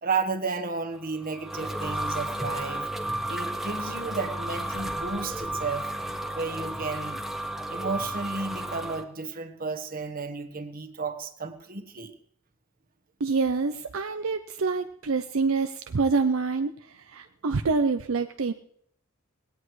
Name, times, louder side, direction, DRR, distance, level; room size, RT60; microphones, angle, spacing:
voice 1, 0.0-2.9 3.3-5.9 6.3-7.2 7.7-12.1, right 4 dB, 45° right, 8 dB, 1.3 m, -33 dB
sound 1, 1.0-9.0, right 1 dB, ahead, 1.0 m, -33 dB
voice 2, 13.2-18.5, right 4 dB, 70° right, 8 dB, 0.6 m, -26 dB
19.5 x 17.5 x 3.2 m, 0.65 s
head